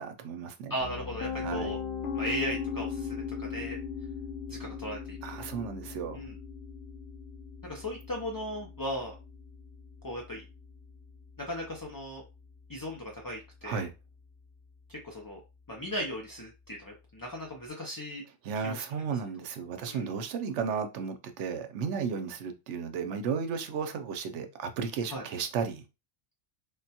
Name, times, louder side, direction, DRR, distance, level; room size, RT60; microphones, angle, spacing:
voice 1, 0.0-0.8 1.4-1.8 5.2-6.2 13.6-13.9 18.4-25.8, right 6 dB, 85° right, 0.9 m, -34 dB
voice 2, 0.7-1.8 2.1-3.2 3.5-3.8 4.5-5.2 6.1-6.3 7.6-9.1 10.0-10.4 11.5-12.2 12.7-13.9 15.0-15.4 15.7-18.2 18.6-18.8 19.9-20.1 25.1-25.2, equal, 35° left, 0.3 m, -37 dB
Piano, 0.8-12.7, left 6 dB, 85° left, 0.9 m, -39 dB
3.4 x 2.2 x 2.8 m
omnidirectional pair, 1.2 m